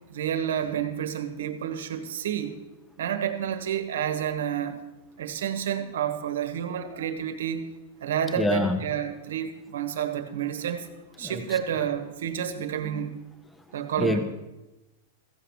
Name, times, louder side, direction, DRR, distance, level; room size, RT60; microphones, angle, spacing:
voice 1, 0.1-2.6 3.0-4.8 5.2-7.7 8.0-10.9 11.2-13.2 13.7-14.2, right 9 dB, 90° right, 8 dB, 1.4 m, -30 dB
voice 2, 8.4-8.8 11.2-11.3 14.0-14.2, left 1 dB, 5° left, 7 dB, 0.7 m, -24 dB
15.0 x 6.4 x 7.1 m, 1.0 s
supercardioid pair, 170°, 0 cm